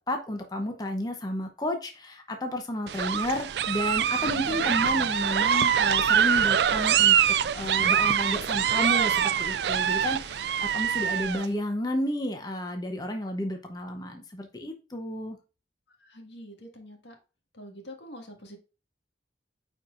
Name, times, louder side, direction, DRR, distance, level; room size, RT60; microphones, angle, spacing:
voice 1, 0.1-7.2 7.5-15.4, left 1 dB, 20° left, 4 dB, 0.8 m, -32 dB
sound 1, 2.9-11.5, right 8 dB, 65° right, 0.4 m, -24 dB
voice 2, 16.0-17.2 17.5-18.6, equal, 80° left, 3 dB, 1.7 m, -45 dB
9.0 x 4.5 x 2.5 m, 0.32 s
head